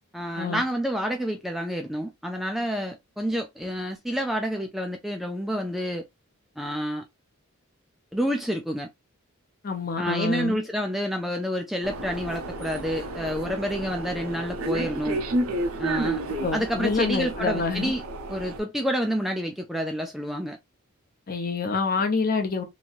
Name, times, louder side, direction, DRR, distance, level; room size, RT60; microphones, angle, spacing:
voice 1, 0.1-6.0 6.6-7.0 8.1-8.9 10.0-15.2 15.8-16.2 16.5-18.0 18.3-20.6, equal, ahead, 0.3 m, -29 dB
voice 2, 9.6-10.6 16.0-16.1 16.4-17.9 21.3-22.6, left 4 dB, 40° left, 0.7 m, -27 dB
sound 1, 11.8-18.6, right 1 dB, 70° right, 0.7 m, -31 dB
3.0 x 2.7 x 2.3 m
head